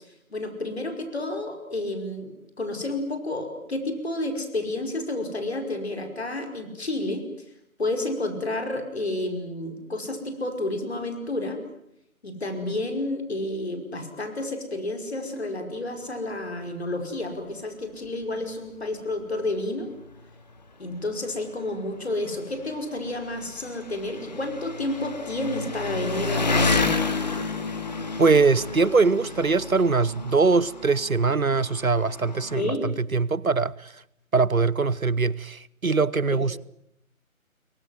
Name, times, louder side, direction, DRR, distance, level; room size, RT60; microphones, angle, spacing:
voice 1, 0.3-2.3 2.6-7.3 7.8-11.6 12.2-19.9 20.8-26.9 32.5-32.9 36.3-36.6, left 2 dB, 45° left, 5.4 m, -30 dB
Engine, 18.1-18.2 18.5-18.6 19.6-19.7 19.9-32.6, left 3 dB, 30° left, 2.0 m, -31 dB
voice 2, 28.2-33.9 34.3-36.6, right 4 dB, 75° right, 1.1 m, -22 dB
26.5 x 23.5 x 7.9 m
figure-of-eight pair, 160°, 42 cm